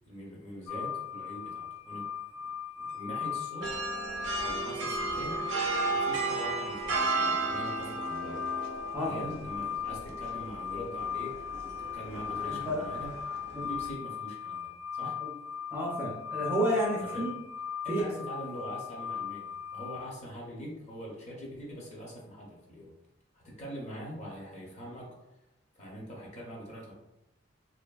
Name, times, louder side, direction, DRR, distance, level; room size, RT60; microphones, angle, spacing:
voice 1, 0.1-2.1 2.8-3.8 4.4-5.4 5.9-8.5 8.9-13.1 13.6-15.2 17.0-17.3 17.8-22.9 23.3-25.2 25.8-26.9, equal, 35° left, -3 dB, 0.7 m, -43 dB
sound 1, 0.7-20.1, left 7 dB, 80° left, 0.3 m, -38 dB
sound 2, 3.6-13.9, right 4 dB, 80° right, 0.5 m, -35 dB
voice 2, 8.9-9.3 12.4-12.8 13.5-13.7 15.2-15.3 15.7-17.3 17.9-18.1, equal, 10° right, -4 dB, 0.4 m, -31 dB
2.5 x 2.5 x 2.3 m, 0.92 s
head